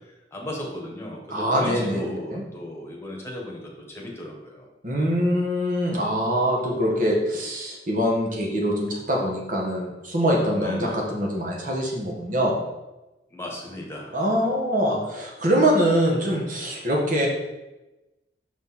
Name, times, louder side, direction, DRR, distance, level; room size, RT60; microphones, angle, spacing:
voice 1, 0.3-4.7 4.9-5.1 10.6-11.0 13.3-14.2, left 1 dB, 15° left, -1 dB, 1.4 m, -35 dB
voice 2, 1.3-2.4 4.8-12.6 14.1-17.3, equal, 50° right, -1 dB, 1.5 m, -24 dB
6.2 x 5.1 x 4.2 m, 1.0 s
head